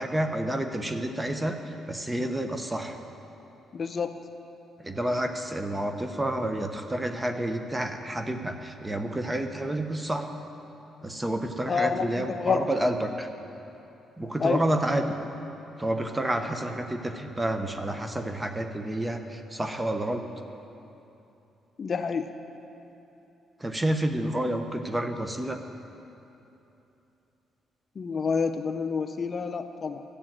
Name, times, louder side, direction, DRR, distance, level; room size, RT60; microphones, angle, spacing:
voice 1, 0.0-1.6 1.9-3.0 4.8-10.3 11.0-13.3 14.2-15.1 15.8-20.3 23.6-25.6, right 1 dB, 15° right, 6 dB, 1.0 m, -29 dB
voice 2, 3.7-4.2 11.7-12.6 14.4-14.6 21.8-22.3 28.0-30.0, left 5 dB, 45° left, 9 dB, 0.6 m, -28 dB
13.0 x 8.6 x 7.5 m, 2.9 s
cardioid pair, 90°, 0 cm